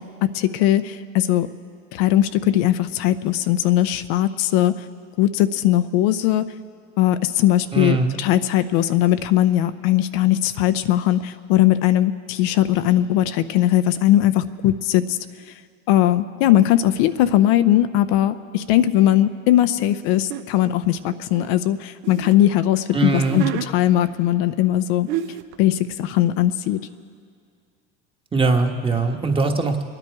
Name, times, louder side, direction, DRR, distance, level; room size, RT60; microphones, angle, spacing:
voice 1, 0.0-1.5 1.9-4.7 5.2-6.5 7.0-15.2 15.9-23.4 23.7-25.1 25.6-26.8, left 13 dB, 70° left, 11 dB, 0.7 m, -19 dB
voice 2, 7.7-8.1 22.9-23.4 28.3-29.8, right 3 dB, 15° right, 4 dB, 1.3 m, -21 dB
sound 1, 20.3-20.5 21.1-22.4 23.0-23.7 24.7-24.8 25.1-25.6, right 11 dB, 70° right, 0.9 m, -29 dB
25.5 x 10.0 x 4.7 m, 2.2 s
supercardioid pair, 115°, 31 cm